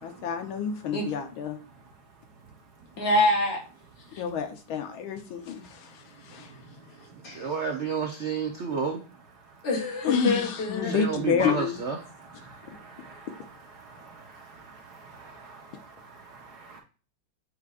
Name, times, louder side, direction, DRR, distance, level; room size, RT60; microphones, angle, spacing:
voice 1, 0.0-1.6 4.2-5.9 6.3-6.5 10.0-11.8, left 7 dB, 75° left, 6 dB, 1.7 m, -29 dB
voice 2, 3.0-3.6 7.2-7.5 9.6-11.0, left 2 dB, 60° left, 0 dB, 2.2 m, -25 dB
voice 3, 7.3-9.0 10.8-12.0, right 6 dB, 70° right, 3 dB, 0.6 m, -30 dB
voice 4, 12.4-13.5 13.8-16.8, right 4 dB, 55° right, 2 dB, 1.4 m, -48 dB
8.2 x 4.8 x 2.5 m, 0.36 s
omnidirectional pair, 2.2 m